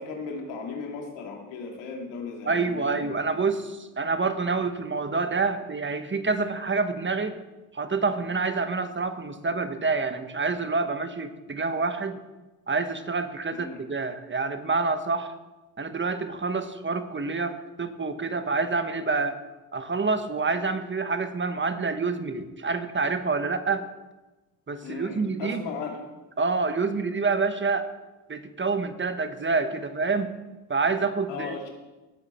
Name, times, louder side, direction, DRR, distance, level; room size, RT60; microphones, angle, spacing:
voice 1, 0.0-3.1 13.5-13.8 24.8-26.0 31.3-31.7, left 4 dB, 80° left, 1 dB, 2.6 m, -36 dB
voice 2, 2.4-7.4 7.7-12.2 12.7-15.3 15.8-19.4 19.7-23.9 24.7-25.6 26.4-27.9 28.3-30.3 30.7-31.7, right 4 dB, 25° right, 9 dB, 1.3 m, -27 dB
18.5 x 7.9 x 4.4 m, 1.1 s
supercardioid pair, 65°, 43 cm